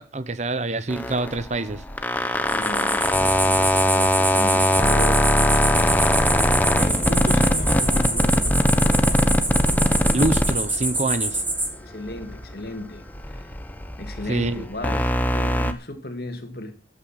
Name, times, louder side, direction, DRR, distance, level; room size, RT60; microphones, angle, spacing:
voice 1, 0.0-1.8 10.1-11.4 14.3-14.6, right 2 dB, 40° right, 0.9 m, -26 dB
sound 1, 0.9-11.5 11.9-15.7, equal, 10° left, 1.1 m, -21 dB
voice 2, 2.5-5.3 6.7-8.6 11.8-13.6 14.0-16.7, left 1 dB, 60° left, 2.5 m, -35 dB
sound 2, 2.5-11.7, right 2 dB, 10° right, 3.0 m, -26 dB
sound 3, 4.2-14.9, left 1 dB, 30° left, 1.7 m, -41 dB
14.0 x 9.1 x 5.8 m
head